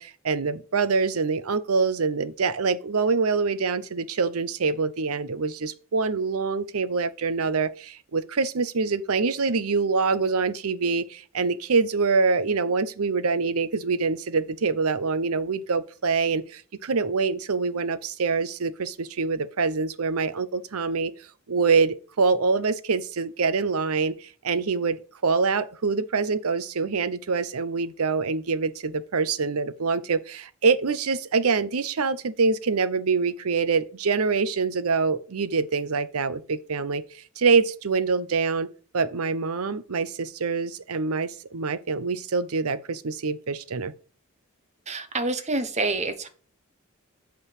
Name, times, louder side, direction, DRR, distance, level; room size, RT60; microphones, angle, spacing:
voice 1, 0.0-21.1 21.5-25.0 25.2-37.0 37.4-38.7 38.9-43.9, right 4 dB, 85° right, 0.7 m, -25 dB
voice 2, 44.9-46.3, right 2 dB, 30° right, 1.0 m, -27 dB
8.2 x 3.8 x 6.5 m
head